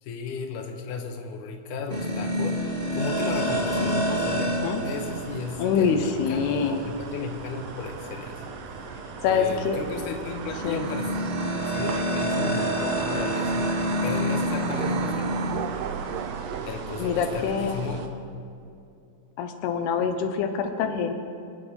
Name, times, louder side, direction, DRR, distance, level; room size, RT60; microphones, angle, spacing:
voice 1, 0.0-2.6 2.9-4.6 4.8-8.5 9.2-11.1 11.7-13.8 14.0-15.4 16.7-18.1, left 4 dB, 65° left, 3 dB, 2.4 m, -34 dB
sound 1, 1.9-18.1, equal, 35° right, 0.9 m, -30 dB
sound 2, 3.3-18.1, right 8 dB, 80° right, 1.9 m, -37 dB
voice 2, 5.6-6.8 8.9-9.8 10.6-10.9 12.4-12.6 14.8-15.5 17.0-17.8 19.4-21.1, left 6 dB, 85° left, 5 dB, 2.9 m, -26 dB
26.5 x 9.0 x 5.3 m, 2.5 s
omnidirectional pair, 4.6 m